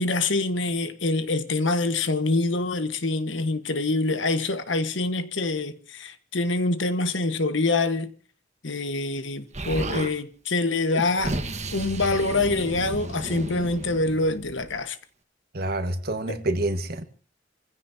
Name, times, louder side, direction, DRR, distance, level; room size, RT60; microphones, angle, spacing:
voice 1, 0.0-8.1 8.6-11.4 11.7-15.0 16.3-16.4, left 2 dB, 80° left, 1.4 m, -25 dB
Explosion, 9.5-10.1 10.9-14.8, right 1 dB, 40° right, 1.4 m, -33 dB
voice 2, 15.5-17.0, right 1 dB, 55° right, 1.6 m, -27 dB
28.0 x 16.0 x 2.8 m
head